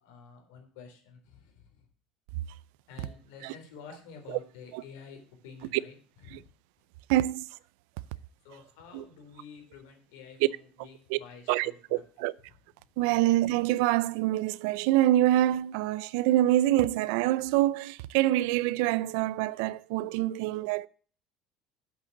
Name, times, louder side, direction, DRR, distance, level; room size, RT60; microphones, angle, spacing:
voice 1, 0.0-1.8 2.9-6.0 6.2-6.5 8.1-12.0, left 6 dB, 90° left, 3.8 m, -50 dB
voice 2, 7.1-7.5 8.9-9.0 11.1-11.2 11.5-12.3 13.0-20.9, right 15 dB, 75° right, 0.5 m, -26 dB
7.9 x 6.7 x 7.7 m
cardioid pair, 165°, 0 cm